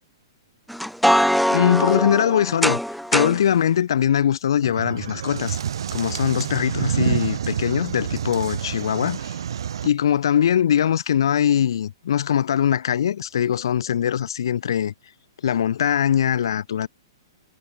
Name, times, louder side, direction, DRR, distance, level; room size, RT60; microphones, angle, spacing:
sound 1, 0.7-3.4, equal, ahead, 2.2 m, -21 dB
voice 1, 1.5-2.8 3.1-5.6 5.9-9.4 9.8-14.9 15.4-16.9, left 9 dB, 70° left, 2.4 m, -21 dB
sound 2, 4.6-9.9, right 8 dB, 75° right, 3.4 m, -28 dB
hypercardioid pair, 165°, 3 cm